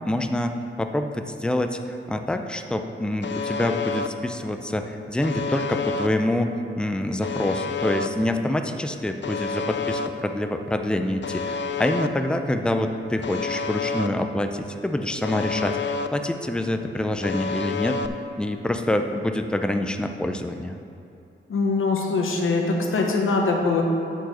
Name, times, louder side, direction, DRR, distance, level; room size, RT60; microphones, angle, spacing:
voice 1, 0.0-18.0 18.4-20.8, left 1 dB, 5° left, 6 dB, 0.4 m, -26 dB
Alarm, 3.2-4.1 5.2-6.1 7.2-8.1 9.2-10.1 11.2-12.1 13.2-14.1 15.2-16.1 17.2-18.1, left 5 dB, 60° left, 0.4 m, -28 dB
voice 2, 21.5-23.9, left 3 dB, 80° left, 0 dB, 1.0 m, -22 dB
9.0 x 4.8 x 6.0 m, 2.8 s
wide cardioid pair, 170°, 21 cm